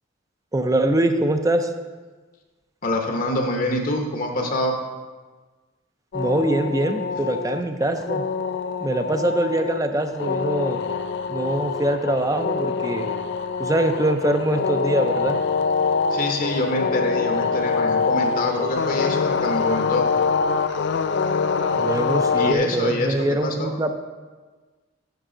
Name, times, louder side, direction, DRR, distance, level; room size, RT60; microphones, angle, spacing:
voice 1, 0.5-1.7 6.1-8.2 8.8-10.8 11.3-13.1 13.6-15.4 21.7-24.0, right 1 dB, 20° right, 7 dB, 0.5 m, -23 dB
voice 2, 2.8-4.8 16.1-20.0 22.4-23.7, left 1 dB, 45° left, 2 dB, 0.8 m, -25 dB
sound 1, 6.1-22.5, left 5 dB, 65° left, 0.3 m, -24 dB
9.4 x 6.5 x 3.8 m, 1.3 s
head